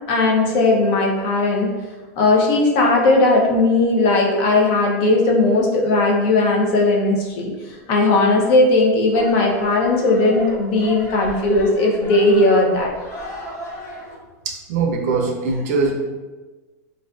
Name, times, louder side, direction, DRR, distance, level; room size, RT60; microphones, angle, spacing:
voice 1, 0.1-1.7 2.2-7.5 7.9-12.9, left 2 dB, 50° left, -1 dB, 0.5 m, -17 dB
sound 1, 9.1-14.2, equal, 80° left, 1.1 m, -35 dB
voice 2, 14.5-15.9, right 4 dB, 65° right, 1 dB, 0.5 m, -21 dB
2.4 x 2.3 x 2.2 m, 1.3 s
supercardioid pair, 145°, 9 cm